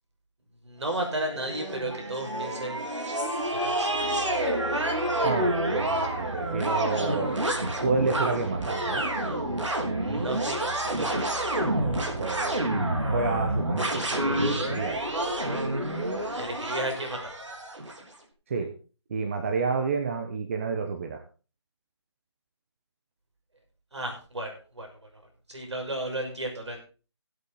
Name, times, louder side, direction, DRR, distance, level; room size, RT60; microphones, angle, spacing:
voice 1, 0.6-2.8 3.5-3.9 10.0-11.4 16.3-17.3 23.9-24.9 25.5-26.8, right 1 dB, 70° right, 2 dB, 6.2 m, -33 dB
sound 1, 0.9-18.0, right 1 dB, 90° right, 3.8 m, -28 dB
voice 2, 5.2-7.4 7.8-9.0 12.2-15.0 18.5-18.7 19.1-21.2, right 4 dB, 25° right, 5 dB, 1.1 m, -30 dB
16.5 x 8.7 x 4.1 m, 0.35 s
figure-of-eight pair, 165°, 15 cm